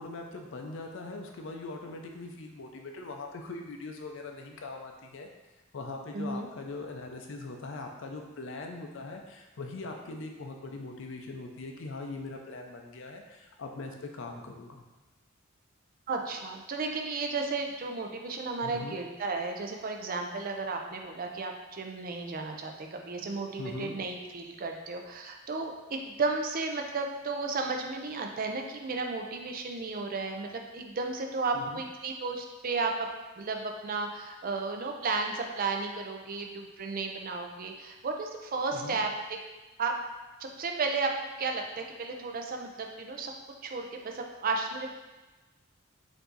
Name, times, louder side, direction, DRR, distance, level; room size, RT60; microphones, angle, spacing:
voice 1, 0.0-5.3 5.7-14.8 18.6-19.0 23.6-24.0 31.5-31.8 38.7-39.0, left 3 dB, 65° left, 2 dB, 0.5 m, -41 dB
voice 2, 6.1-6.5 16.1-33.1 33.4-39.4 39.8-40.0 40.4-43.3 43.6-44.9, right 3 dB, 45° right, 3 dB, 0.5 m, -33 dB
4.7 x 2.6 x 3.8 m, 1.2 s
head